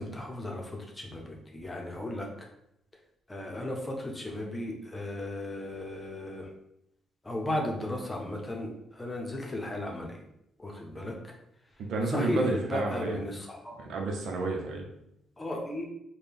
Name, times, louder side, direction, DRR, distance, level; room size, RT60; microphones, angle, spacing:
voice 1, 0.0-2.3 3.3-6.5 7.2-10.2 10.6-11.3 12.1-13.8 15.4-15.9, left 1 dB, 20° left, 0 dB, 0.8 m, -35 dB
voice 2, 11.9-13.2 13.8-14.9, right 2 dB, 75° right, 1 dB, 0.8 m, -31 dB
4.1 x 2.3 x 3.5 m, 0.79 s
cardioid pair, 90°, 0 cm